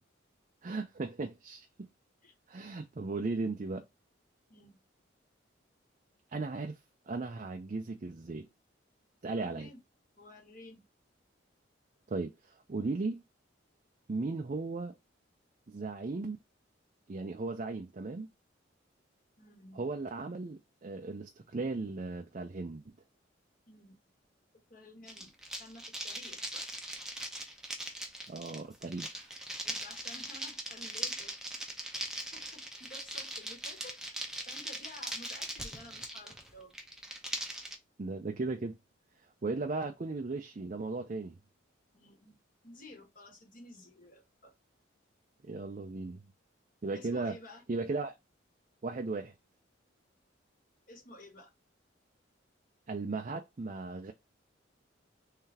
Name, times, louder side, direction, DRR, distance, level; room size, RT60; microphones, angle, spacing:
voice 1, 0.6-1.9 2.5-3.8 6.3-6.8 7.1-8.5 9.2-9.7 12.1-13.2 14.1-14.9 15.7-16.4 17.1-18.3 19.7-22.8 28.3-29.3 38.0-38.8 39.4-41.3 45.4-46.2 46.8-47.4 47.7-48.1 48.8-49.3 52.9-54.1, right 3 dB, 40° right, 0.4 m, -36 dB
voice 2, 9.3-9.8 10.2-10.8 19.4-19.9 23.7-24.0 24.7-26.6 29.6-31.3 31.7-31.8 32.3-34.0 34.4-36.7 41.9-42.4 42.6-44.5 46.9-47.6 50.9-51.5, left 1 dB, 45° left, 1.4 m, -52 dB
sound 1, 25.1-37.7, right 1 dB, 5° right, 0.7 m, -40 dB
3.8 x 3.3 x 2.8 m
head